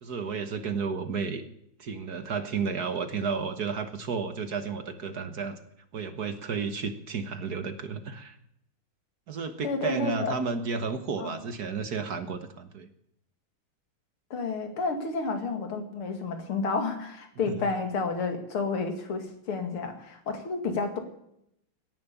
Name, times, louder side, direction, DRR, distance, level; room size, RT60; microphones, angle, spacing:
voice 1, 0.0-1.4 1.8-5.6 5.9-8.4 9.3-12.9 17.5-17.6, right 5 dB, 50° right, 9 dB, 1.6 m, -32 dB
voice 2, 9.6-10.3 11.2-11.4 14.3-21.0, left 4 dB, 80° left, 6 dB, 3.1 m, -30 dB
17.0 x 11.0 x 6.9 m, 0.76 s
omnidirectional pair, 2.3 m